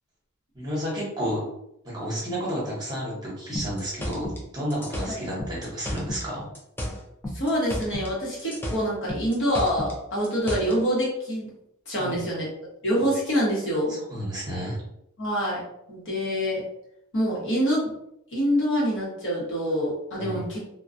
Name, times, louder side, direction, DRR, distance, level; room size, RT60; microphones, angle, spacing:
voice 1, 0.5-1.4 1.8-6.5 12.0-12.2 13.9-14.8 20.1-20.4, equal, 20° right, -6 dB, 0.9 m, -31 dB
sound 1, 3.6-6.3 6.6-8.1 8.4-10.8, equal, 10° left, 0.4 m, -33 dB
voice 2, 7.3-11.5 11.9-12.5 12.8-14.0 15.2-15.6 15.9-16.6 17.1-17.9 18.3-20.6, equal, 60° left, -5 dB, 1.0 m, -26 dB
2.2 x 2.2 x 2.5 m, 0.77 s
head